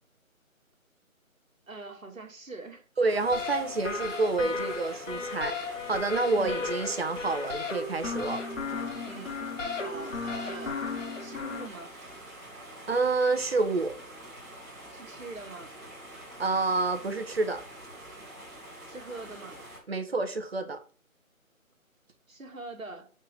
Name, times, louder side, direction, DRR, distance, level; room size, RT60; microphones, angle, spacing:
voice 1, 1.7-2.8 4.4-4.6 6.3-6.6 9.0-9.4 9.8-10.8 11.2-11.9 14.9-15.7 18.9-19.6 22.3-23.1, right 3 dB, 70° right, 2.0 m, -43 dB
voice 2, 3.0-8.4 12.9-13.9 16.4-17.6 19.9-20.8, right 3 dB, 45° right, 1.1 m, -28 dB
sound 1, 3.1-19.8, right 1 dB, 15° right, 2.6 m, -46 dB
sound 2, 3.3-11.7, left 4 dB, 60° left, 1.5 m, -35 dB
6.6 x 4.4 x 5.2 m
figure-of-eight pair, 155°, 42 cm